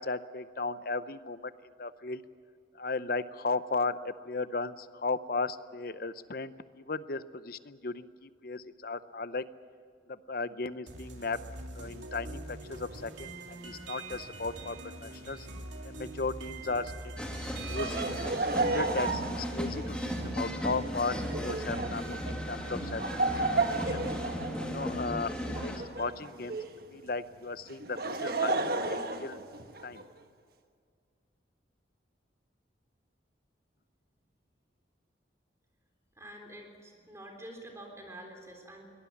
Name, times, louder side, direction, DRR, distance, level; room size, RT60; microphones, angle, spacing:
voice 1, 0.0-1.5 1.8-2.2 2.7-9.4 10.1-11.4 11.7-15.5 15.8-17.4 17.7-18.0 18.5-19.9 20.3-23.5 23.7-24.1 24.6-26.6 26.9-29.4 29.8-30.0, left 3 dB, 50° left, 14 dB, 0.7 m, -36 dB
sound 1, 10.9-18.3, right 2 dB, 80° right, 2.9 m, -43 dB
sound 2, 17.2-25.8, equal, 5° left, 2.5 m, -36 dB
Laughter, 17.7-26.8 27.7-30.0, right 3 dB, 55° right, 1.3 m, -33 dB
voice 2, 36.2-38.8, right 1 dB, 15° right, 2 dB, 3.6 m, -47 dB
23.0 x 18.5 x 8.6 m, 2.1 s
head